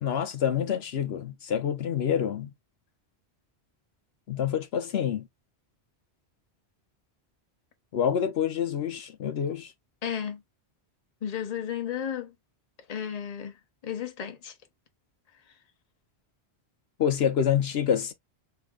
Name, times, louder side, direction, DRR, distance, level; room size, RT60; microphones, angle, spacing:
voice 1, 0.0-2.5 4.3-5.3 7.9-9.7 17.0-18.1, left 8 dB, 70° left, 0.9 m, -27 dB
voice 2, 10.0-10.4 11.2-12.3 12.9-13.6 13.8-14.5, left 9 dB, 40° left, 0.9 m, -33 dB
5.5 x 3.3 x 2.4 m
omnidirectional pair, 1.1 m